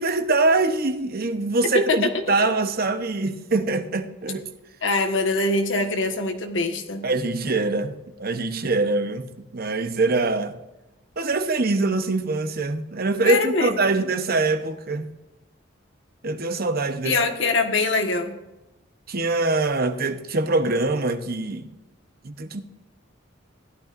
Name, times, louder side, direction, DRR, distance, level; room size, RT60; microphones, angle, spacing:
voice 1, 0.0-4.5 7.0-10.5 11.2-15.1 16.2-17.2 19.1-21.7 22.2-22.6, right 3 dB, 50° right, 0.9 m, -24 dB
voice 2, 4.8-7.1 13.2-13.7 17.0-18.4, left 3 dB, 70° left, 1.5 m, -23 dB
16.5 x 12.0 x 2.6 m
head